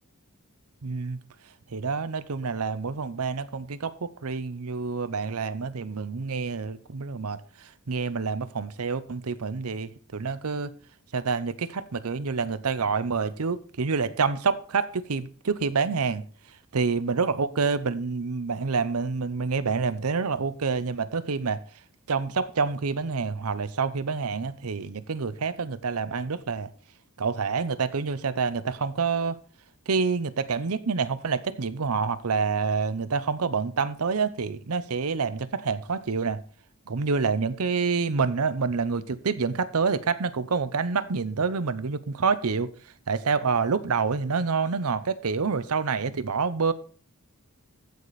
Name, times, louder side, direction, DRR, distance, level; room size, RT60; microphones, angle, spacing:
voice 1, 0.8-1.2 1.7-7.4 7.9-10.7 11.1-16.2 16.7-21.6 22.1-26.7 27.2-29.4 29.9-36.4 36.9-42.7 43.1-46.7, right 5 dB, 85° right, 0.7 m, -27 dB
14.5 x 5.0 x 4.1 m
head